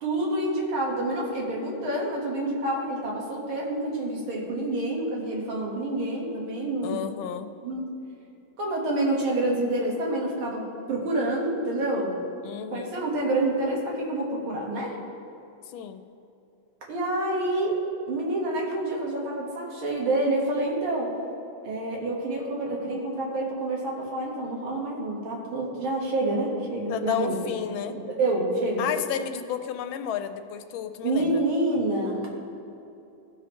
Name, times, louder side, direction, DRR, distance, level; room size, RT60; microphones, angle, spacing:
voice 1, 0.0-7.1 7.6-7.9 8.6-12.3 12.7-15.0 16.9-17.8 18.1-21.1 21.6-28.9 31.0-32.3, right 1 dB, 90° right, -3 dB, 2.4 m, -28 dB
voice 2, 6.8-7.5 12.4-13.0 15.7-16.0 26.9-28.0 28.8-31.4, left 9 dB, 85° left, 9 dB, 1.4 m, -32 dB
16.0 x 6.2 x 3.1 m, 2.8 s
omnidirectional pair, 2.2 m